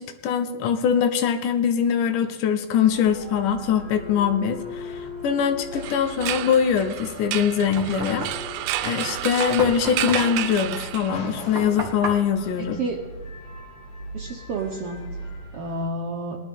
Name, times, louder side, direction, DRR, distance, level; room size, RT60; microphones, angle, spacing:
voice 1, 0.0-8.3 8.8-12.8, left 7 dB, 80° left, 7 dB, 2.4 m, -23 dB
sound 1, 2.8-15.8, left 1 dB, 60° left, 3.2 m, -39 dB
sound 2, 5.7-11.4, right 14 dB, 85° right, 2.2 m, -31 dB
Knock, 7.2-13.7, right 2 dB, 25° right, 1.4 m, -36 dB
voice 2, 12.6-13.0 14.1-15.0 15.5-16.4, right 2 dB, 70° right, 1 dB, 1.4 m, -30 dB
19.0 x 11.5 x 3.6 m, 1.2 s
omnidirectional pair, 3.7 m